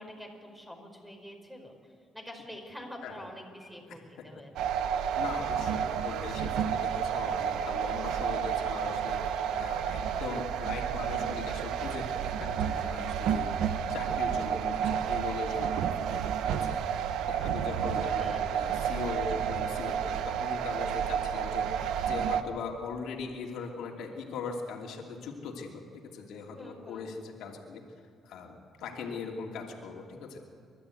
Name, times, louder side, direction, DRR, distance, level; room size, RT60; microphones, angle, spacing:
voice 1, 0.0-1.7 2.1-4.5 18.2-18.4 26.5-27.1, left 1 dB, 5° right, 2 dB, 5.0 m, -46 dB
sound 1, 4.6-22.4, right 8 dB, 85° right, 0.9 m, -31 dB
voice 2, 5.1-13.5 13.9-16.1 16.4-16.8 17.3-27.8 28.2-30.4, left 5 dB, 85° left, 0 dB, 2.7 m, -40 dB
29.0 x 13.0 x 8.4 m, 2.3 s
cardioid pair, 90°, 0 cm